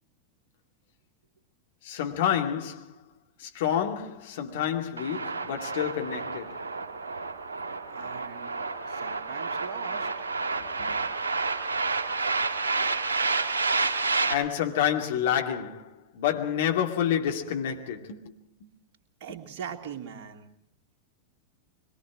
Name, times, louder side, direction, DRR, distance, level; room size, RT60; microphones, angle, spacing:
voice 1, 1.8-3.0 3.4-6.6 8.7-8.8 10.6-11.0 14.3-18.7 19.3-19.4, left 9 dB, 55° left, 2.4 m, -29 dB
sound 1, 5.0-14.3, right 3 dB, 70° right, 1.9 m, -30 dB
voice 2, 7.9-8.6 8.9-10.1 19.2-20.5, right 7 dB, 50° right, 2.7 m, -40 dB
25.0 x 22.0 x 4.9 m
figure-of-eight pair, 90°, 0 cm